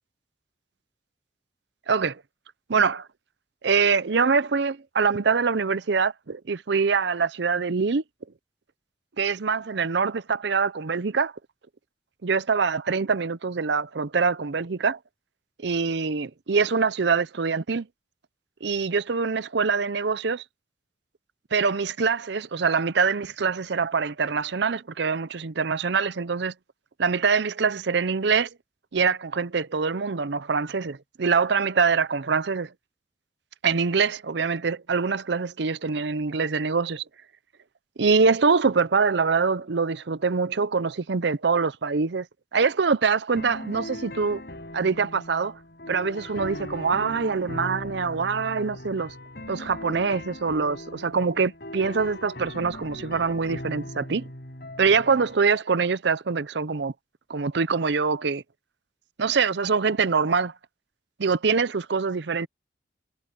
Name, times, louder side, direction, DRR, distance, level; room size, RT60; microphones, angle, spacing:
voice 1, 1.9-2.2 2.7-3.1 3.6-8.0 9.2-11.3 12.2-15.0 15.6-17.9 18.6-20.4 21.5-26.5 27.0-28.5 28.9-32.7 33.6-37.0 38.0-42.3 42.5-44.4 44.7-45.6 45.9-49.1 49.5-54.2 54.8-56.9 57.3-58.4 59.2-60.5 61.2-62.5, right 5 dB, 65° right, 0.6 m, -24 dB
sound 1, 43.4-55.4, left 1 dB, 55° left, 5.2 m, -39 dB
head